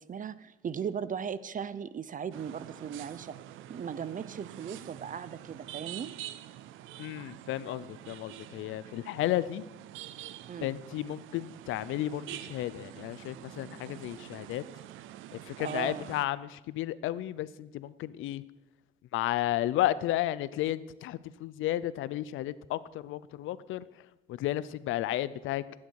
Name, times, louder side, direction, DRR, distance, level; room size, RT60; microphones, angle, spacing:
voice 1, 0.0-3.3 3.7-6.2 10.5-10.7 15.6-16.1, right 7 dB, 40° right, 16 dB, 0.7 m, -37 dB
sound 1, 2.3-16.3, right 13 dB, 90° right, 0.6 m, -46 dB
voice 2, 7.0-9.6 10.6-14.6 15.5-18.4 19.1-23.8 24.3-25.9, left 14 dB, 85° left, 18 dB, 0.6 m, -33 dB
15.5 x 9.6 x 4.8 m, 1.0 s
cardioid pair, 90°, 20 cm